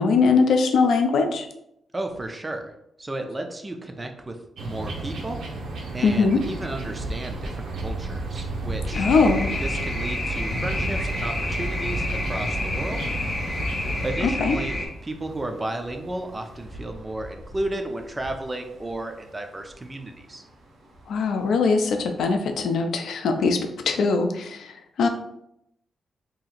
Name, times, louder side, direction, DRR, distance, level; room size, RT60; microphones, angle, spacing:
voice 1, 0.0-1.5 6.0-6.4 9.0-9.5 14.4-14.6 21.1-24.7 25.0-25.1, left 4 dB, 75° left, 5 dB, 0.4 m, -21 dB
voice 2, 1.9-5.4 5.9-9.1 9.6-13.1 14.0-20.4, right 1 dB, 15° right, 4 dB, 0.3 m, -33 dB
sound 1, 4.6-14.1, right 3 dB, 65° right, 0.6 m, -35 dB
sound 2, 6.3-22.6, equal, 85° right, 0.9 m, -38 dB
sound 3, 8.9-14.9, left 1 dB, 30° left, 1.0 m, -29 dB
2.8 x 2.5 x 4.0 m, 0.78 s
wide cardioid pair, 165°, 0 cm